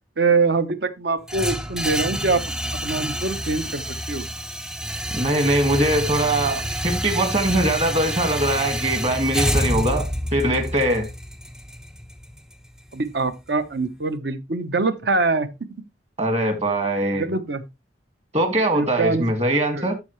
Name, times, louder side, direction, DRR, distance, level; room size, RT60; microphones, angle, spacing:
voice 1, 0.2-2.4 2.7-4.2 12.9-15.5 17.1-17.6 18.7-19.9, right 3 dB, 55° right, 0.9 m, -24 dB
sound 1, 1.3-13.3, equal, 5° right, 0.4 m, -28 dB
voice 2, 5.1-11.1 16.2-17.2 18.3-20.0, right 1 dB, 35° right, 1.9 m, -22 dB
13.0 x 4.7 x 3.2 m
head